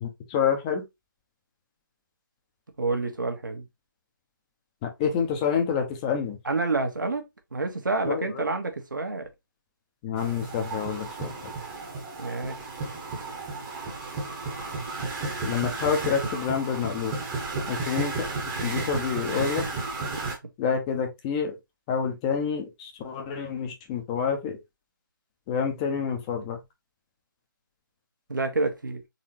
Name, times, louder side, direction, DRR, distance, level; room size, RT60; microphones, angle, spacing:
voice 1, 0.0-0.8 4.8-6.4 8.1-8.4 10.0-11.3 15.4-17.1 17.7-18.3 18.6-19.6 20.6-21.5 21.9-24.6 25.5-26.6, left 7 dB, 15° left, 0.8 m, -28 dB
voice 2, 2.8-3.7 6.4-9.3 12.2-12.6 28.3-29.0, right 3 dB, 65° right, 1.3 m, -28 dB
sound 1, 10.2-20.4, right 3 dB, 15° right, 1.1 m, -33 dB
4.1 x 3.6 x 3.0 m
figure-of-eight pair, 150°, 11 cm